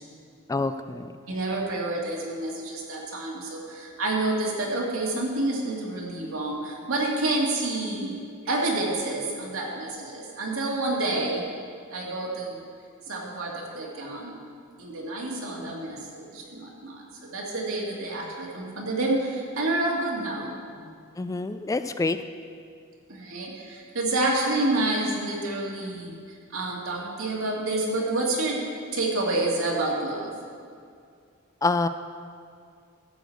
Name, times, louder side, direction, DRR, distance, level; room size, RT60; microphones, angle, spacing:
voice 1, 0.5-1.1 21.2-22.2 31.6-31.9, left 3 dB, 15° left, 10 dB, 0.3 m, -26 dB
voice 2, 1.3-11.5 11.9-12.6 13.1-14.4 14.8-20.9 23.1-26.1 26.5-30.3, right 2 dB, 90° right, -3 dB, 2.3 m, -28 dB
13.5 x 5.1 x 7.8 m, 2.3 s
head